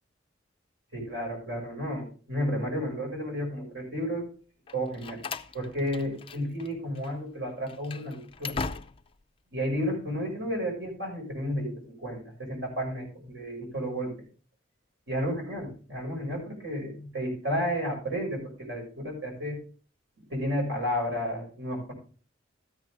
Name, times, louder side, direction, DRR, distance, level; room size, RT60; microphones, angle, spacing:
voice 1, 0.9-4.3 4.7-5.2 5.5-8.6 9.5-14.1 15.1-19.6 20.2-21.9, equal, 65° right, 0 dB, 6.4 m, -32 dB
Slam, 4.7-6.7 7.0-7.1 7.6-9.2, left 4 dB, 30° left, 0.5 m, -38 dB
13.5 x 9.3 x 3.7 m, 0.38 s
head